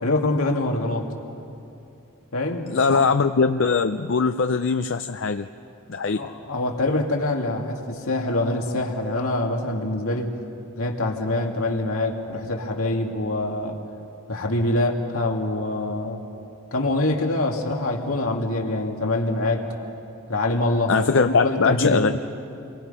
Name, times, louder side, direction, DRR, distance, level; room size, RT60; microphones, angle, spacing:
voice 1, 0.0-1.1 2.3-3.0 6.2-10.3 10.7-13.8 14.3-16.2 16.7-19.7 20.3-22.0, left 2 dB, 90° left, 1 dB, 2.5 m, -25 dB
voice 2, 2.7-5.5 5.9-6.2 20.9-22.2, left 4 dB, 60° left, 8 dB, 0.5 m, -21 dB
29.5 x 23.5 x 5.7 m, 2.7 s
head